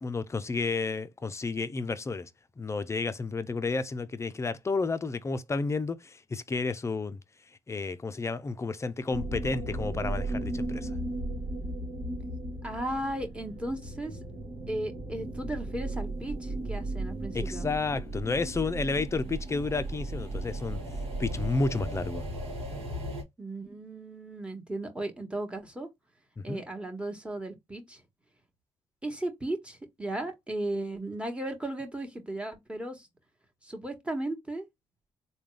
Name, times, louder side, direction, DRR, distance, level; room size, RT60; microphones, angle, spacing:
voice 1, 0.0-2.3 2.6-7.2 7.7-10.9 17.3-20.8 21.2-22.2 26.4-26.6, left 3 dB, 25° left, 0.5 m, -31 dB
sound 1, 9.1-23.2, right 2 dB, 65° right, 1.3 m, -36 dB
voice 2, 12.6-14.2 14.7-17.7 23.4-25.9 26.4-28.0 29.0-33.1 33.6-34.7, right 1 dB, 10° right, 1.3 m, -36 dB
3.7 x 2.3 x 3.2 m
cardioid pair, 75°, 11 cm